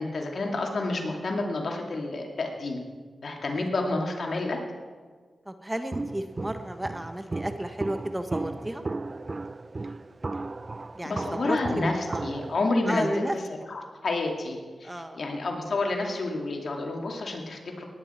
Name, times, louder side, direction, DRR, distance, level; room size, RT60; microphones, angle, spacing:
voice 1, 0.0-2.8 3.2-4.6 11.0-13.3 13.7-17.8, left 2 dB, 65° left, 1 dB, 2.4 m, -29 dB
voice 2, 3.5-3.9 5.5-8.8 10.9-12.3 12.9-13.4 14.8-15.2, right 1 dB, 15° right, 7 dB, 1.2 m, -33 dB
Walk footsteps, 5.9-12.6, right 3 dB, 40° right, 0.4 m, -35 dB
18.5 x 10.0 x 4.4 m, 1.5 s
cardioid pair, 50°, 0 cm